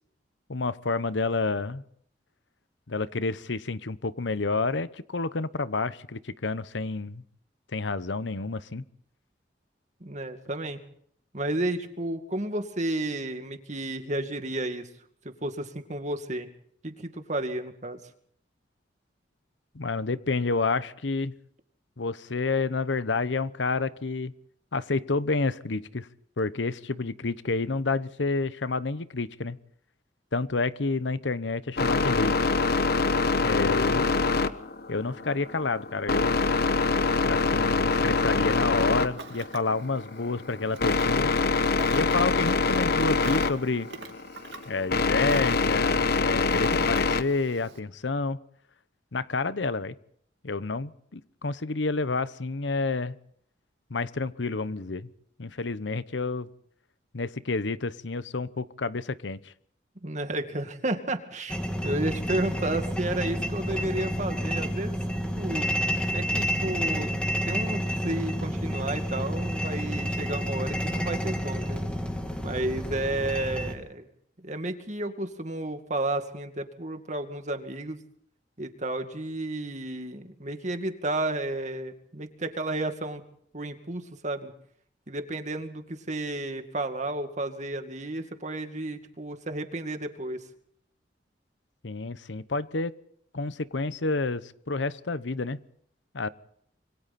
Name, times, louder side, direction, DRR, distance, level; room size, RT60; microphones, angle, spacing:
voice 1, 0.5-1.8 2.9-7.2 7.7-8.8 19.7-21.3 22.0-24.3 24.7-26.1 26.4-29.6 30.3-32.5 33.4-34.1 34.9-36.4 37.2-41.3 41.9-43.9 44.7-48.4 49.1-49.9 50.4-53.2 53.9-55.1 55.4-56.5 57.1-59.5 91.8-93.0 93.3-95.6 96.1-96.3, left 3 dB, 80° left, 15 dB, 0.9 m, -29 dB
voice 2, 10.0-10.8 11.3-14.9 15.2-16.5 16.8-18.0 60.0-61.6 61.8-65.0 65.4-65.8 66.1-67.1 67.5-71.8 72.4-74.1 74.4-78.0 78.6-83.2 83.5-84.5 85.1-90.4, right 1 dB, 40° right, 7 dB, 2.2 m, -32 dB
sound 1, 31.8-47.2, left 4 dB, 60° left, 1.1 m, -25 dB
Ocean, 38.8-47.8, right 3 dB, 70° right, 2.5 m, -45 dB
sound 2, 61.5-73.7, equal, 5° left, 3.0 m, -29 dB
26.5 x 24.0 x 4.3 m, 0.64 s
head